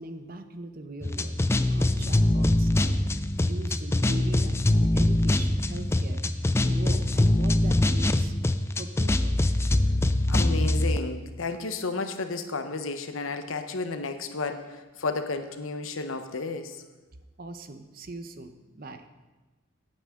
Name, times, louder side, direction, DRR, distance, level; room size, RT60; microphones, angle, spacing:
voice 1, 0.0-3.1 3.4-6.2 6.5-8.3 8.8-9.4 17.4-19.1, right 2 dB, 45° right, 8 dB, 0.8 m, -40 dB
sound 1, 1.0-11.0, left 1 dB, 15° left, 0.3 m, -23 dB
voice 2, 10.3-16.8, left 3 dB, 85° left, 8 dB, 1.0 m, -32 dB
17.0 x 8.8 x 3.8 m, 1.2 s
head